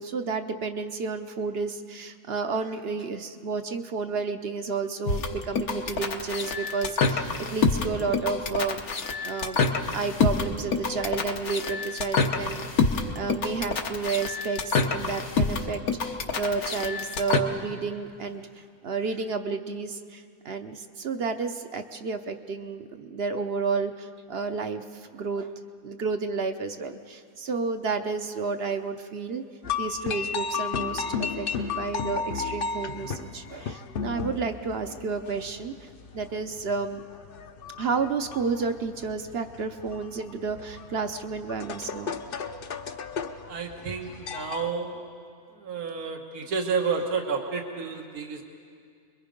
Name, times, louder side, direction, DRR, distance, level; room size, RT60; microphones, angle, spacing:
voice 1, 0.0-9.6 9.9-12.9 13.1-25.5 25.8-29.4 29.8-35.9 36.1-37.0 37.8-42.1, right 4 dB, 50° right, 8 dB, 0.9 m, -31 dB
sound 1, 5.0-17.4, left 4 dB, 80° left, 1.6 m, -27 dB
sound 2, 29.6-44.7, left 5 dB, 50° left, 0.8 m, -34 dB
voice 2, 43.5-45.0 45.6-48.4, right 5 dB, 85° right, 3 dB, 1.8 m, -30 dB
28.0 x 22.0 x 5.2 m, 2.2 s
omnidirectional pair, 1.5 m